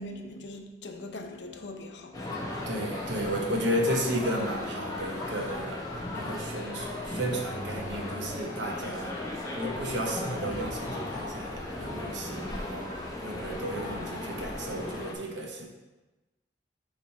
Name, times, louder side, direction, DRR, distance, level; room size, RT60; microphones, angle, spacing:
voice 1, 0.0-2.2, left 1 dB, 75° left, 0.7 m, -41 dB
sound 1, 2.1-15.1, left 1 dB, 20° left, 0.9 m, -36 dB
voice 2, 2.6-15.7, equal, 80° right, 1.1 m, -33 dB
8.6 x 3.2 x 4.3 m
head